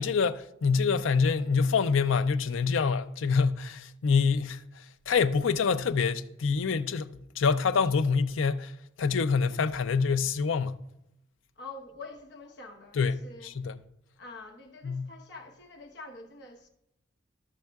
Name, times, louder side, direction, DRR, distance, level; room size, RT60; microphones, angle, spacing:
voice 1, 0.0-4.6 5.1-8.7 9.0-10.8 13.0-13.2 13.4-13.8 14.8-15.1, left 5 dB, 90° left, 0.5 m, -26 dB
voice 2, 11.6-13.5 14.2-16.7, left 3 dB, 60° left, 1.1 m, -46 dB
13.0 x 6.4 x 2.3 m
head